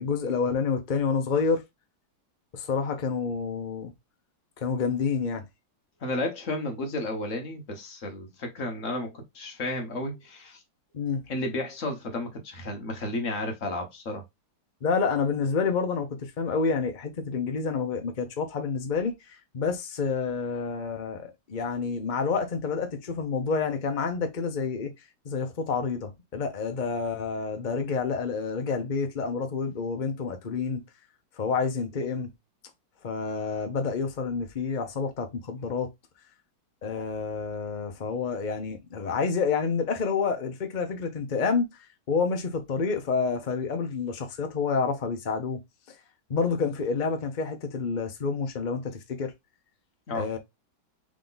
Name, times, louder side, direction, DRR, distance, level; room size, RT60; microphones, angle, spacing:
voice 1, 0.0-1.6 2.5-3.9 4.6-5.4 10.9-11.2 14.8-24.9 25.2-30.8 31.4-32.3 33.0-35.9 36.8-41.7 42.1-45.6 46.3-49.3 50.1-50.4, left 5 dB, 65° left, 0.4 m, -28 dB
voice 2, 6.0-10.6 11.3-14.2 50.1-50.3, left 2 dB, 45° left, 1.4 m, -32 dB
3.7 x 3.7 x 3.8 m
omnidirectional pair, 2.2 m